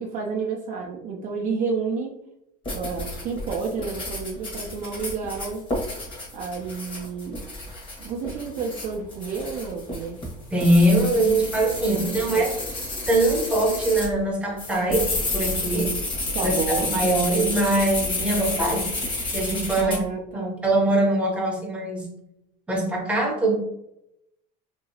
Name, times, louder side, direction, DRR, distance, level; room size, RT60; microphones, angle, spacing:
voice 1, 0.0-2.1 2.7-5.6 6.3-7.4 8.0-10.2 11.9-12.5 16.3-16.9 19.8-20.5, right 5 dB, 45° right, 0 dB, 0.5 m, -30 dB
sound 1, 2.7-14.1 14.6-20.0, left 2 dB, 25° left, 1.3 m, -30 dB
voice 2, 10.5-12.5 13.1-16.0 16.4-16.5 16.9-18.9 19.3-19.9 20.3-22.1 22.7-23.6, right 1 dB, 5° right, -2 dB, 0.8 m, -22 dB
2.9 x 2.7 x 2.8 m, 0.82 s
supercardioid pair, 125°, 19 cm